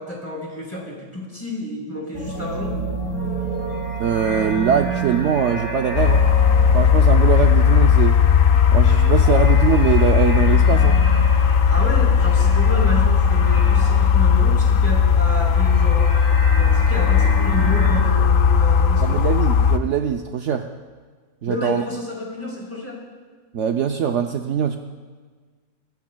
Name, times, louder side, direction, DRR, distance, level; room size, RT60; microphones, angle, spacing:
voice 1, 0.0-2.8 11.7-16.2 16.6-19.4 21.5-23.0, left 1 dB, 10° left, -3 dB, 4.0 m, -30 dB
sound 1, 2.1-15.0 15.3-17.9, right 3 dB, 60° left, 3.4 m, -31 dB
sound 2, 3.0-9.6, right 1 dB, 20° right, 2.4 m, -37 dB
voice 2, 4.0-6.3 6.7-8.2 8.7-11.0 19.0-20.6 21.4-21.8 23.5-24.8, right 8 dB, 65° right, 5 dB, 0.9 m, -22 dB
sound 3, 6.0-19.8, left 7 dB, 80° left, 1.2 m, -16 dB
21.0 x 18.0 x 2.3 m, 1.5 s
omnidirectional pair, 1.4 m